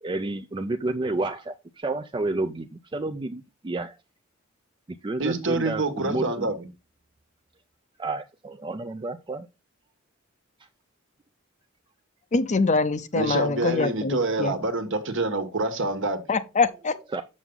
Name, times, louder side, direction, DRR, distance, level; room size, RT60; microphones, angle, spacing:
voice 1, 0.0-4.0 4.9-6.5 8.0-9.5 10.6-10.7 17.1-17.2, right 2 dB, 25° right, 0.4 m, -30 dB
voice 2, 5.2-6.6 13.1-16.2, right 2 dB, 65° right, 1.3 m, -26 dB
voice 3, 12.3-14.5 16.3-17.0, left 3 dB, 35° left, 0.6 m, -24 dB
6.9 x 6.3 x 3.8 m
head